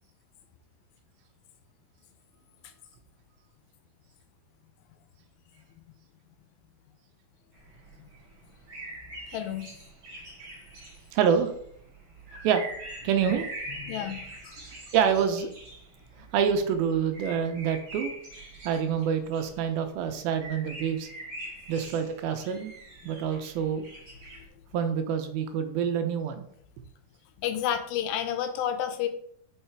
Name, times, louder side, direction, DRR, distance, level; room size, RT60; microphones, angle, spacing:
sound 1, 7.5-24.5, right 1 dB, 40° right, 1.6 m, -44 dB
voice 1, 9.3-9.7 13.8-14.6 27.4-29.1, left 10 dB, 80° left, 8 dB, 2.4 m, -30 dB
voice 2, 11.1-11.5 12.4-12.6 13.0-13.5 14.9-15.5 16.3-18.1 18.7-21.1 21.7-22.7 23.1-23.9 24.7-26.4, right 7 dB, 85° right, 7 dB, 2.5 m, -26 dB
5.5 x 4.8 x 4.5 m, 0.66 s
omnidirectional pair, 4.3 m